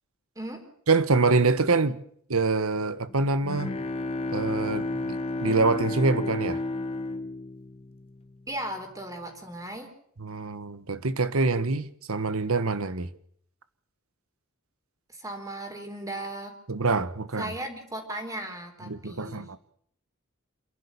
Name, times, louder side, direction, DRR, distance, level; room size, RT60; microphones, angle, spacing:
voice 1, 0.4-0.7 8.5-9.9 15.1-16.5 17.4-19.4, right 1 dB, 15° right, 3.9 m, -36 dB
voice 2, 0.9-2.0 2.3-3.8 4.3-6.6 10.2-13.1 16.7-17.5 18.9-19.6, right 3 dB, 80° right, 1.3 m, -25 dB
Bowed string instrument, 3.1-8.6, left 2 dB, 30° left, 1.4 m, -32 dB
27.5 x 11.5 x 8.4 m
head